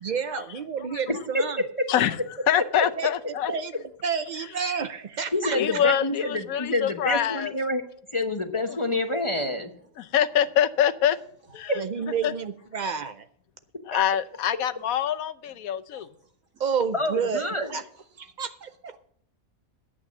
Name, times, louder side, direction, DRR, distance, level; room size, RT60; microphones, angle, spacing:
voice 1, 0.0-1.6 3.0-3.1 3.5-3.7 4.0-5.8 11.8-13.3 16.6-17.8 18.2-18.9, right 6 dB, 85° right, 11 dB, 0.4 m, -30 dB
voice 2, 1.9-2.2 2.5-3.5 5.5-7.5 8.7-8.8 10.0-11.2 11.5-11.8 12.2-12.3 13.9-16.1, left 9 dB, 75° left, 11 dB, 1.1 m, -25 dB
voice 3, 5.3-7.8 8.1-9.7 16.9-17.7, left 1 dB, 25° left, 5 dB, 0.8 m, -27 dB
voice 4, 15.9-16.6 17.9-18.3 18.6-18.7, right 4 dB, 70° right, 2 dB, 2.4 m, -57 dB
10.5 x 8.6 x 5.9 m, 0.65 s
omnidirectional pair, 1.5 m